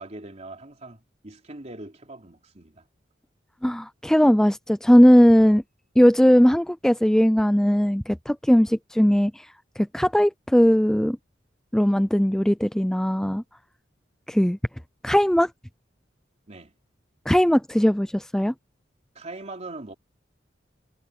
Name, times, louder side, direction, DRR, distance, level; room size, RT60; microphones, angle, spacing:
voice 1, 0.0-2.8 16.5-16.7 19.1-19.9, right 2 dB, 40° right, 3.2 m, -41 dB
voice 2, 3.6-5.6 6.0-9.5 9.8-11.2 11.7-13.4 14.3-14.6 15.0-15.5 17.3-18.5, equal, 5° left, 0.4 m, -19 dB
head